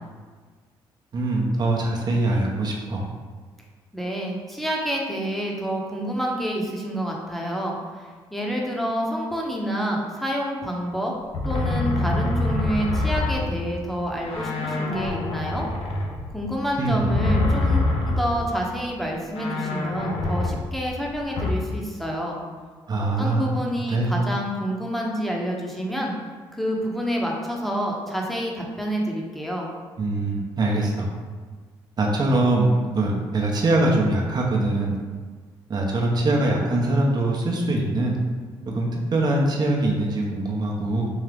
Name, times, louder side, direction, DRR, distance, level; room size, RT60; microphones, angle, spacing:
voice 1, 1.1-3.0 16.8-17.1 22.9-23.6 23.9-24.1 30.0-31.1 32.0-34.9 35.7-38.2 38.7-41.1, right 2 dB, 40° right, -1 dB, 0.8 m, -23 dB
voice 2, 3.9-11.1 11.4-15.7 16.3-22.4 23.2-26.1 26.5-29.7, equal, ahead, -2 dB, 0.9 m, -28 dB
sound 1, 11.3-14.0 14.3-18.5 18.8-18.9 19.3-21.5, left 2 dB, 65° left, 0.7 m, -26 dB
3.6 x 2.8 x 3.4 m, 1.5 s
supercardioid pair, 60°, 10 cm